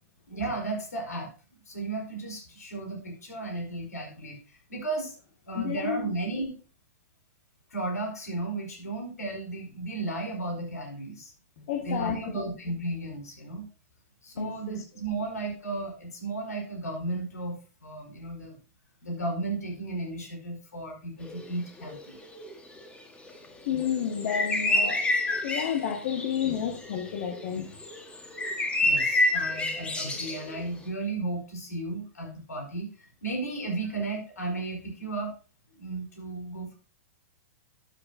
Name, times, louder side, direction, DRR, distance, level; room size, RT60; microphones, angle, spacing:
voice 1, 0.3-1.3 1.7-5.1 5.4-6.5 7.7-11.3 11.8-13.6 14.2-18.6 19.0-22.2 28.8-35.3 35.8-36.8, right 2 dB, 80° left, 1 dB, 4.0 m, -34 dB
voice 2, 5.5-6.0 11.7-12.5 14.4-14.8 23.6-27.7, left 8 dB, 55° left, 3 dB, 1.6 m, -31 dB
sound 1, 21.2-21.5 21.8-27.4 27.7-30.6, left 1 dB, 10° left, 1.5 m, -29 dB
12.5 x 7.8 x 2.7 m, 0.35 s
hypercardioid pair, 115°, 9 cm